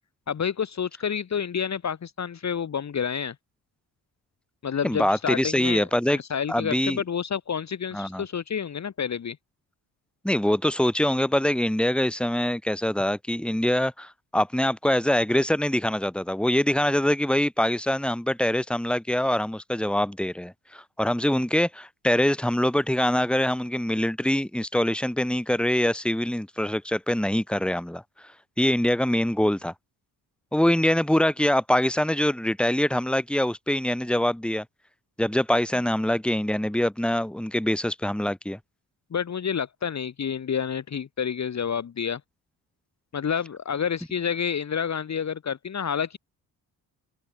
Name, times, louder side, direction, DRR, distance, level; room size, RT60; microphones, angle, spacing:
voice 1, 0.3-3.3 4.6-5.9 6.1-9.4 39.1-42.2 43.1-46.2, left 7 dB, 45° left, 1.4 m, -29 dB
voice 2, 4.8-6.2 6.5-7.0 7.9-8.3 10.2-28.0 28.6-29.7 30.5-34.7 35.2-38.6, left 1 dB, ahead, 2.2 m, -24 dB
supercardioid pair, 65°, 39 cm